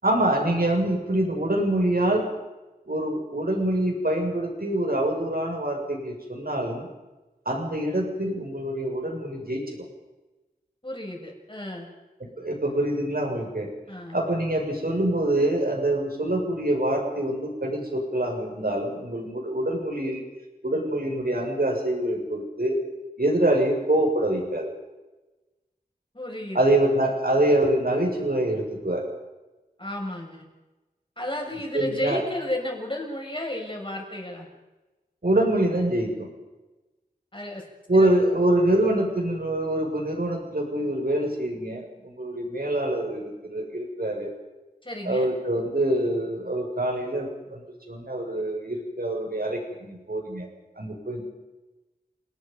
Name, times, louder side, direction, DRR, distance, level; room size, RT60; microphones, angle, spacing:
voice 1, 0.0-2.3 2.9-6.9 7.5-9.8 12.2-13.7 14.1-20.2 20.6-22.8 23.2-24.7 26.5-29.0 31.7-32.2 35.2-36.3 37.9-44.3 45.0-47.6 47.9-50.5 50.8-51.2, right 1 dB, 70° right, 1 dB, 6.4 m, -25 dB
voice 2, 10.8-11.9 13.9-14.2 26.1-26.6 29.8-30.5 31.2-34.5 37.3-37.6 37.9-38.1 38.6-38.7 44.8-45.3, left 1 dB, 30° left, 0 dB, 6.9 m, -33 dB
29.5 x 19.5 x 5.5 m, 1.1 s
wide cardioid pair, 45°, 16 cm